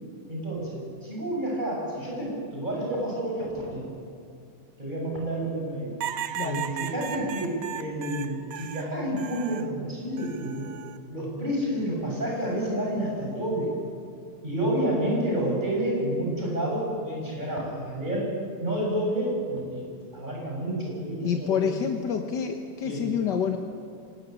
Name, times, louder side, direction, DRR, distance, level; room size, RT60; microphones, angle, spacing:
voice 1, 0.3-3.9 4.8-6.0 6.4-10.7 11.1-13.7 14.4-18.3 18.6-19.9 20.1-21.9 22.8-23.1, right 1 dB, 25° right, -2 dB, 7.3 m, -29 dB
sound 1, 6.0-9.7 10.2-11.0 12.3-12.8, right 9 dB, 60° right, 1.3 m, -36 dB
voice 2, 6.4-6.7 21.2-23.6, left 7 dB, 80° left, 4 dB, 1.9 m, -27 dB
25.0 x 19.0 x 9.4 m, 2.4 s
omnidirectional pair, 1.8 m